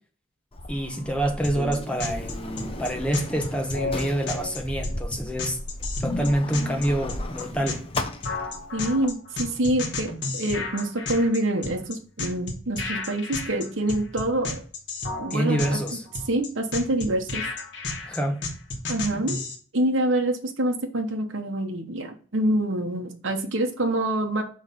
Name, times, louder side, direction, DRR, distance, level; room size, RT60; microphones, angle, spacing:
Sliding door, 0.5-9.1, left 1 dB, 30° left, 0.6 m, -36 dB
voice 1, 0.7-5.6 6.0-7.8 15.3-16.0 18.1-18.4, right 1 dB, 5° left, 0.9 m, -27 dB
sound 1, 1.4-19.6, left 3 dB, 60° left, 1.2 m, -32 dB
voice 2, 8.7-14.6 15.2-15.8 16.3-17.4 18.9-19.4 19.7-24.4, right 1 dB, 65° right, 0.9 m, -26 dB
5.8 x 3.2 x 5.2 m
head